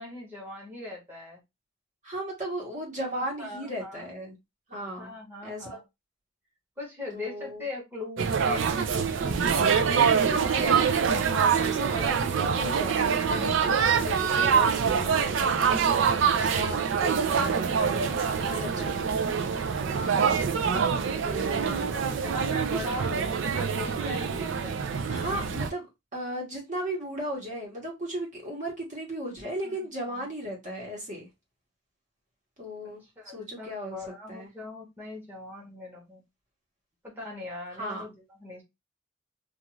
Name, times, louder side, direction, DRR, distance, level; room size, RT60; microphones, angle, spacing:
voice 1, 0.0-1.4 3.4-4.1 5.0-5.8 6.8-9.4 13.3-13.6 15.6-16.0 18.1-19.0 21.1-24.8 29.6-29.8 30.1-30.3 32.8-36.2 37.0-38.6, left 2 dB, 10° right, 1.0 m, -40 dB
voice 2, 2.0-4.4 4.7-5.1 5.4-5.8 7.1-7.6 10.2-19.3 19.9-20.3 21.2-22.0 25.1-25.8 26.1-31.3 32.6-33.0 33.3-34.0 34.3-34.5 37.8-38.0, equal, 40° right, 1.1 m, -36 dB
sound 1, 8.2-25.7, right 6 dB, 75° right, 0.4 m, -25 dB
2.5 x 2.4 x 3.0 m
head